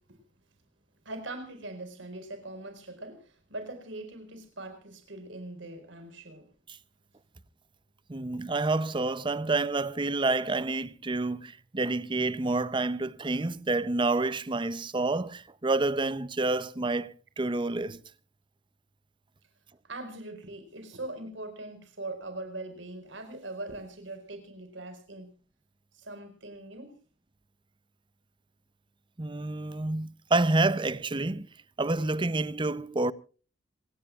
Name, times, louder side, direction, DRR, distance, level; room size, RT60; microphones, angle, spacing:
voice 1, 1.0-6.5 13.4-13.5 19.8-25.3 25.9-27.0, right 2 dB, 80° right, 4.9 m, -41 dB
voice 2, 8.1-18.0 29.2-31.5 31.8-33.1, right 2 dB, 25° right, 0.6 m, -28 dB
27.0 x 17.0 x 2.4 m
head